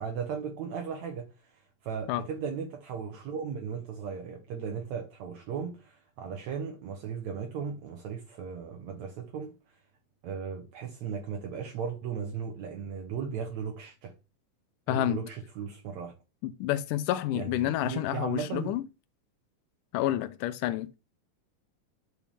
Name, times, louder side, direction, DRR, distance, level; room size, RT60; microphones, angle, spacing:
voice 1, 0.0-9.8 10.2-14.1 14.9-16.1 17.3-18.8, right 6 dB, 70° right, 2.2 m, -36 dB
voice 2, 14.9-15.2 16.4-18.8 19.9-21.0, left 13 dB, 90° left, 2.2 m, -29 dB
10.5 x 4.6 x 3.4 m
omnidirectional pair, 3.7 m